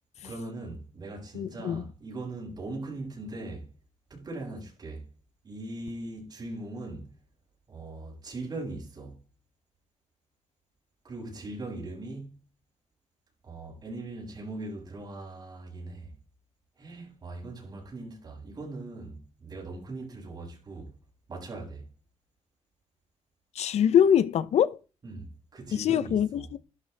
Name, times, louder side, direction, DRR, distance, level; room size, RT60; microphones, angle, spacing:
voice 1, 0.2-3.7 4.1-5.0 5.4-7.1 7.7-9.2 11.0-12.4 13.4-16.1 16.8-20.9 21.3-21.8 25.0-26.5, right 2 dB, 35° right, 7.7 m, -40 dB
voice 2, 1.3-1.8 23.6-24.8 25.7-26.6, left 9 dB, 70° left, 0.8 m, -23 dB
12.5 x 12.0 x 3.5 m
cardioid pair, 135°, 12 cm